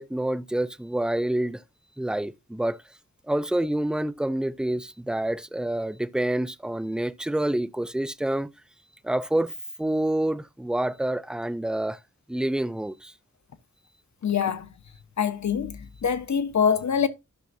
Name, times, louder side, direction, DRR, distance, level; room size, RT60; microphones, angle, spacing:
voice 1, 0.0-1.6 2.0-2.8 3.3-8.5 9.0-9.5 9.8-12.0 12.3-13.1, right 1 dB, 5° right, 0.5 m, -27 dB
voice 2, 14.2-14.7 15.2-17.1, left 7 dB, 70° left, 1.1 m, -24 dB
13.5 x 5.7 x 2.6 m
wide cardioid pair, 80°, 29 cm